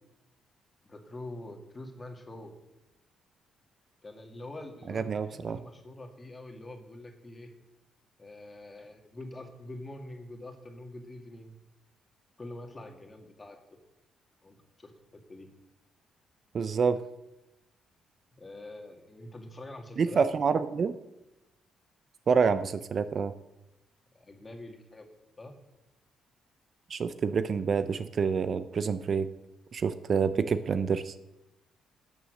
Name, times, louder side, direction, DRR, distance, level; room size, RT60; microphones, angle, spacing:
voice 1, 0.8-2.5 4.0-7.6 8.2-11.6 12.4-13.6 14.4-15.5 18.4-20.2 24.1-25.1 25.4-25.5, left 1 dB, 25° left, 4 dB, 2.1 m, -45 dB
voice 2, 4.9-5.6 16.5-17.0 20.0-20.9 22.3-23.3 26.9-29.3 29.7-31.1, right 5 dB, 50° right, 12 dB, 0.6 m, -27 dB
12.5 x 7.2 x 6.5 m, 0.97 s
cardioid pair, 90°, 0 cm